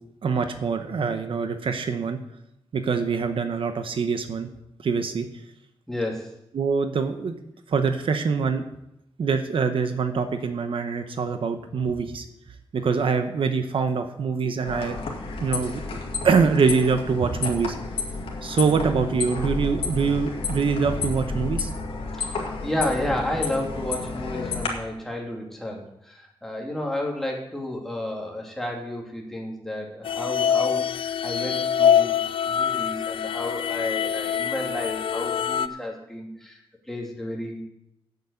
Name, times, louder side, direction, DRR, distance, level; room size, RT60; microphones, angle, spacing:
voice 1, 0.2-2.2 2.7-4.5 4.8-5.3 6.5-7.3 7.7-8.6 9.2-12.2 12.7-15.0 15.4-15.8 16.2-17.7 18.4-21.7, right 5 dB, 70° right, 8 dB, 0.9 m, -24 dB
voice 2, 5.9-6.3 22.1-32.2 32.5-36.6 36.9-37.6, left 1 dB, 5° left, -1 dB, 2.8 m, -31 dB
sound 1, 14.6-24.7, left 4 dB, 90° left, 2.1 m, -31 dB
sound 2, 30.0-35.7, left 8 dB, 70° left, 0.4 m, -24 dB
8.3 x 8.1 x 8.2 m, 0.82 s
wide cardioid pair, 110°, 9 cm